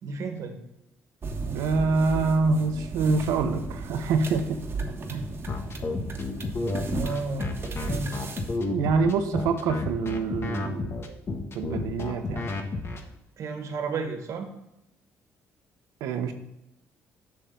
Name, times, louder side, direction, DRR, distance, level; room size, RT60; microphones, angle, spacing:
voice 1, 0.0-0.6 6.9-7.6 7.9-8.2 12.4-12.5 13.4-14.5, right 4 dB, 65° right, 5 dB, 1.5 m, -32 dB
sound 1, 1.2-8.6, right 3 dB, 45° right, 1.3 m, -35 dB
voice 2, 1.4-4.6 5.1-5.3 8.7-11.0 11.5-12.5 16.0-16.3, right 4 dB, 80° right, 7 dB, 1.0 m, -26 dB
sound 2, 5.5-13.0, left 3 dB, 45° left, 1.4 m, -31 dB
7.2 x 6.2 x 3.8 m, 0.86 s
supercardioid pair, 70°, 6 cm